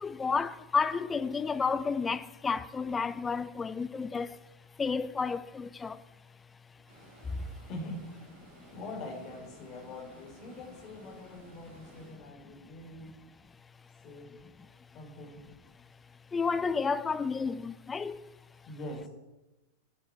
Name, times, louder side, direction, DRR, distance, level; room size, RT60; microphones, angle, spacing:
voice 1, 0.0-4.3 4.8-6.0 16.3-18.2, left 5 dB, 15° left, 0.6 m, -31 dB
Stream, 6.9-12.2, right 2 dB, 50° right, 5.5 m, -56 dB
voice 2, 7.7-8.0 8.7-13.1 14.0-14.3 14.9-15.4 18.6-19.1, left 1 dB, 35° left, 4.5 m, -43 dB
10.0 x 9.3 x 9.0 m
figure-of-eight pair, 90°, 0 cm